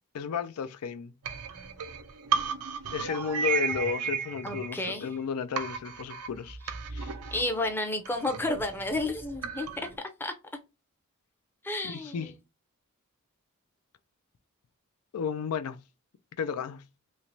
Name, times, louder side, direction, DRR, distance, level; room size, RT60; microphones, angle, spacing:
voice 1, 0.1-1.1 2.9-6.6 6.9-7.1 11.8-12.3 15.1-15.8 16.4-16.8, left 6 dB, 85° left, 0.4 m, -33 dB
sound 1, 1.2-5.2 5.6-10.0, right 6 dB, 90° right, 0.6 m, -34 dB
voice 2, 4.4-5.1 7.3-10.3 11.6-12.3, left 2 dB, 10° left, 0.5 m, -31 dB
3.2 x 2.9 x 2.6 m
head